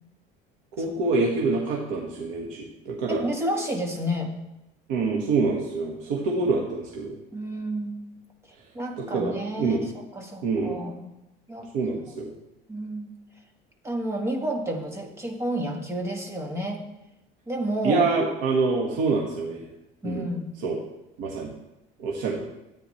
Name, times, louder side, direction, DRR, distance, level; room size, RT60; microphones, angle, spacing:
voice 1, 0.7-3.2 4.9-7.1 9.0-9.8 10.4-10.8 11.7-12.3 17.8-19.6 20.0-20.3 20.6-20.8 21.2-21.5 22.0-22.4, right 4 dB, 75° right, -2 dB, 1.6 m, -26 dB
voice 2, 3.1-4.3 7.3-8.0 8.7-11.1 11.5-11.7 12.7-13.1 13.8-16.8 17.5-18.1 20.0-20.5, right 1 dB, 15° right, 2 dB, 1.4 m, -30 dB
13.5 x 9.2 x 3.2 m, 0.93 s
cardioid pair, 155°, 18 cm